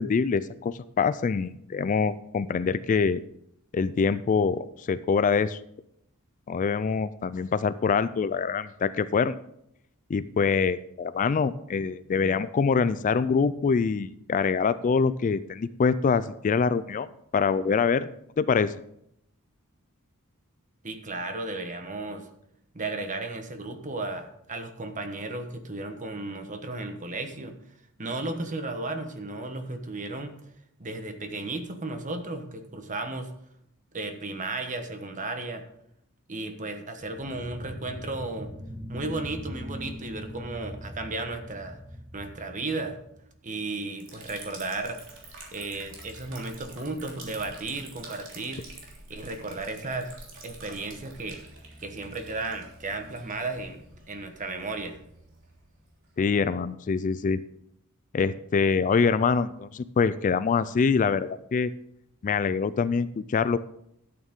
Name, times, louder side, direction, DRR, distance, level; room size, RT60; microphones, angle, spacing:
voice 1, 0.0-3.2 3.7-5.6 6.5-9.4 10.1-17.1 17.3-18.8 56.2-57.4 58.1-61.7 62.2-63.6, left 5 dB, 35° left, 15 dB, 0.3 m, -25 dB
voice 2, 20.8-22.3 22.7-27.5 28.0-30.3 30.8-33.3 33.9-35.7 36.3-38.5 38.9-41.8 42.1-43.0 43.4-45.0 45.5-48.6 49.1-50.1 50.4-51.4 51.8-55.0, right 2 dB, 35° right, 7 dB, 1.2 m, -34 dB
sound 1, 37.0-43.5, equal, 15° right, 1.0 m, -41 dB
Liquid, 44.0-56.5, right 2 dB, 60° right, 3.2 m, -47 dB
12.5 x 8.8 x 3.7 m, 0.75 s
head